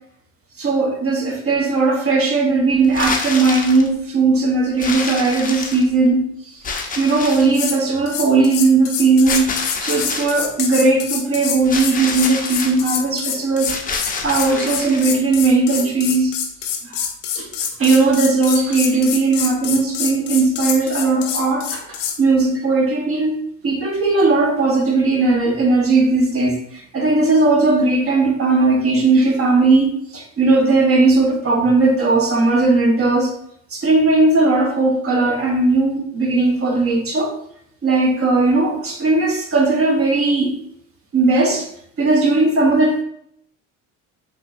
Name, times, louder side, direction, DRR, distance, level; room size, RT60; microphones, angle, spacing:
voice 1, 0.6-6.2 6.5-6.6 7.0-9.5 9.8-13.7 14.2-16.3 16.8-17.1 17.3-17.5 17.8-33.3 33.7-37.3 37.8-40.6 41.1-41.7 42.0-43.0, right 3 dB, 35° right, 1 dB, 0.9 m, -17 dB
sound 1, 2.8-3.9 4.8-6.1 6.6-7.6 9.3-10.4 11.6-12.8 13.6-15.1, left 4 dB, 20° left, 0.6 m, -27 dB
sound 2, 7.3-7.8 8.1-22.2, left 8 dB, 80° left, 0.7 m, -26 dB
3.4 x 3.0 x 2.5 m, 0.72 s
supercardioid pair, 70°, 38 cm